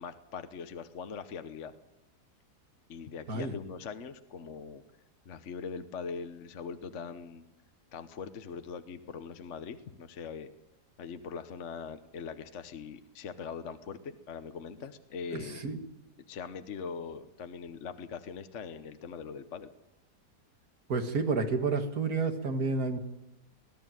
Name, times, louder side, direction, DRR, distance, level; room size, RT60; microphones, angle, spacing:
voice 1, 0.0-1.7 2.9-4.8 5.2-7.4 7.9-10.5 11.0-15.6 16.3-19.7, left 6 dB, 50° left, 9 dB, 1.2 m, -41 dB
voice 2, 15.3-15.8 20.9-23.0, right 4 dB, 60° right, 5 dB, 2.4 m, -30 dB
21.0 x 13.5 x 9.2 m, 0.95 s
omnidirectional pair, 1.7 m